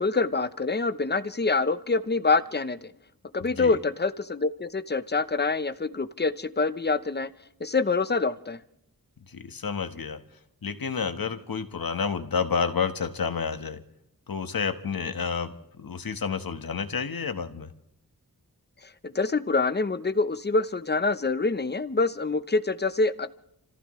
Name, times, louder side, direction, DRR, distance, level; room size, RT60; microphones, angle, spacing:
voice 1, 0.0-2.9 3.3-7.3 7.6-8.6 19.0-23.3, left 3 dB, 30° left, 12 dB, 0.9 m, -26 dB
voice 2, 3.4-3.8 9.2-10.2 10.6-13.8 14.3-17.7, left 5 dB, 75° left, 8 dB, 1.5 m, -30 dB
30.0 x 15.0 x 3.2 m, 0.75 s
wide cardioid pair, 100°, 35 cm